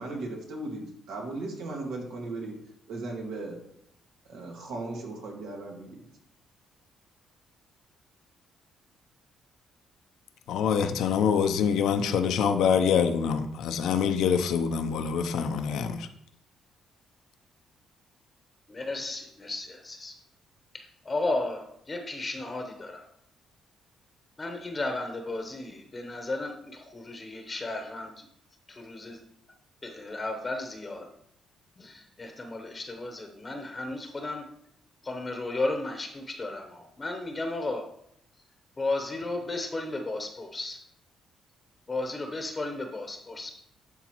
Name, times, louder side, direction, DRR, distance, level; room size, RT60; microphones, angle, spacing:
voice 1, 0.0-2.5 2.9-3.6 4.3-6.1, right 2 dB, 90° right, 0 dB, 1.7 m, -37 dB
voice 2, 10.5-16.1, left 7 dB, 80° left, 8 dB, 0.6 m, -25 dB
voice 3, 18.7-20.2 20.7-23.1 24.4-28.3 28.7-29.2 29.8-31.1 31.8-34.5 35.0-37.9 38.8-40.8 41.9-43.5, left 2 dB, 25° left, 4 dB, 0.8 m, -34 dB
11.0 x 4.0 x 3.0 m, 0.73 s
cardioid pair, 90°, 0 cm